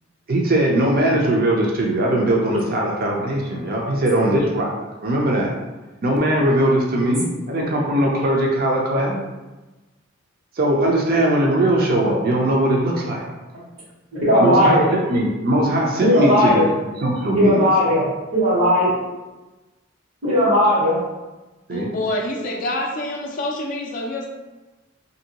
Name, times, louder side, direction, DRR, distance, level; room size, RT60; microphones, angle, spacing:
voice 1, 0.3-4.7 5.0-5.5 6.0-9.2 10.6-13.2 14.4-16.7 17.0-17.7 21.7-21.9, right 1 dB, 45° right, -1 dB, 0.5 m, -20 dB
voice 2, 14.1-14.9 16.0-16.7 17.4-18.1 18.3-18.9 20.2-21.0 22.3-22.4, equal, 85° right, -12 dB, 1.3 m, -17 dB
voice 3, 21.7-24.3, left 1 dB, 40° left, 1 dB, 0.3 m, -26 dB
2.9 x 2.6 x 2.8 m, 1.1 s
head